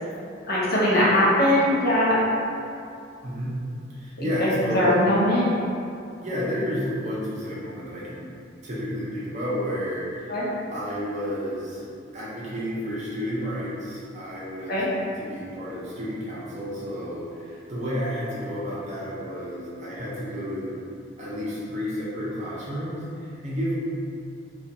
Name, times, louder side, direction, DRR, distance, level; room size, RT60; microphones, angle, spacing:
voice 1, 0.4-2.2 4.2-5.5 10.3-10.4 14.7-14.9, left 1 dB, 55° left, -7 dB, 0.6 m, -21 dB
voice 2, 3.2-3.5 3.9-5.0 6.2-8.3 8.6-10.4 10.7-20.8 21.2-23.8, equal, 40° right, -7 dB, 0.6 m, -31 dB
2.3 x 2.3 x 2.7 m, 2.5 s
head